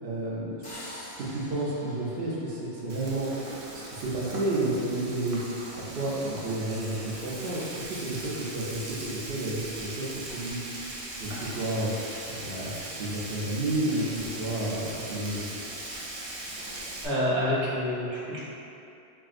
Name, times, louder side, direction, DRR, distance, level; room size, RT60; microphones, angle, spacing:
voice 1, 0.0-0.6 1.0-3.3 3.7-5.4 5.8-9.0 9.3-10.1 10.3-10.6 11.2-11.9 12.3-12.7 13.0-15.4, right 2 dB, 65° right, -6 dB, 0.8 m, -31 dB
sound 1, 0.6-3.5, left 1 dB, 65° left, 1.1 m, -45 dB
Frying (food), 2.9-17.1, right 1 dB, 45° right, 0.5 m, -39 dB
voice 2, 17.0-18.4, equal, 85° right, -8 dB, 1.2 m, -27 dB
3.8 x 3.5 x 2.4 m, 2.8 s
omnidirectional pair, 1.1 m